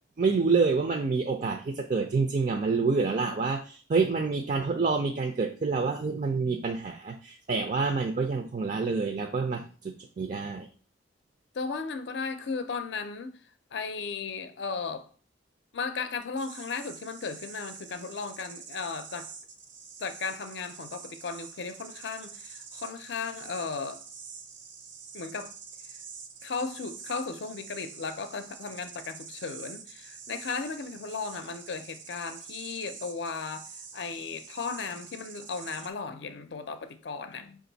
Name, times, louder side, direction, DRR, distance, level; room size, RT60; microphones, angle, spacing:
voice 1, 0.2-10.7, right 4 dB, 40° right, 0.4 m, -27 dB
voice 2, 11.5-13.3 13.7-15.1 15.7-19.3 20.0-24.0 25.1-25.5 25.9-26.0 26.4-37.6, left 4 dB, 65° left, 0.5 m, -36 dB
sound 1, 16.4-35.9, right 6 dB, 75° right, 0.7 m, -46 dB
5.3 x 2.5 x 3.9 m
head